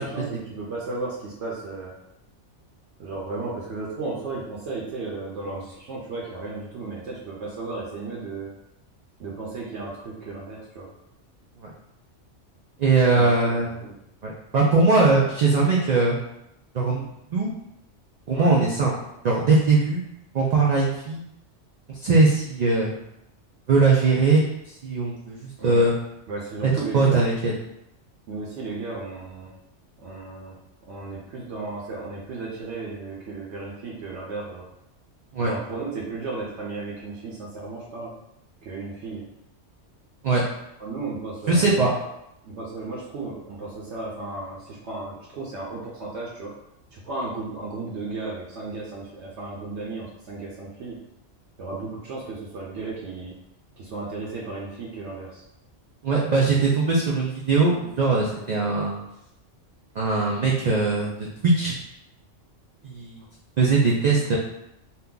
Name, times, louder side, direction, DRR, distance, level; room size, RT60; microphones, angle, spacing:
voice 1, 0.0-1.9 3.0-8.5 9.2-10.9 13.1-14.0 18.3-18.5 25.6-25.9 26.3-27.3 28.3-29.5 30.0-30.6 30.9-34.6 35.4-38.1 38.6-39.2 40.8-41.8 42.4-46.5 46.9-51.0 51.6-53.3 53.8-55.4, right 3 dB, 70° right, -4 dB, 0.9 m, -34 dB
voice 2, 12.8-13.7 14.2-16.2 16.7-17.5 18.3-18.9 19.2-20.0 20.3-21.2 21.9-22.9 23.7-24.4 24.8-25.9 26.6-27.5 35.3-35.5 40.2-40.4 41.5-41.9 56.0-59.0 60.0-61.7 62.8-63.2 63.6-64.4, right 3 dB, 85° right, -3 dB, 0.3 m, -21 dB
2.8 x 2.2 x 3.6 m, 0.82 s
omnidirectional pair, 1.3 m